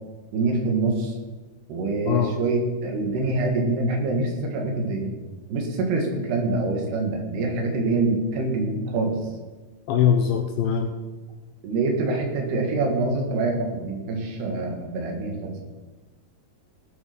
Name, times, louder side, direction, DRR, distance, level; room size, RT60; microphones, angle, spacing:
voice 1, 0.3-1.2 1.7-5.1 5.5-9.2 11.6-15.7, right 3 dB, 75° right, 2 dB, 3.9 m, -25 dB
voice 2, 9.9-10.9, left 8 dB, 75° left, 5 dB, 2.1 m, -21 dB
17.5 x 8.3 x 5.2 m, 1.3 s
omnidirectional pair, 4.8 m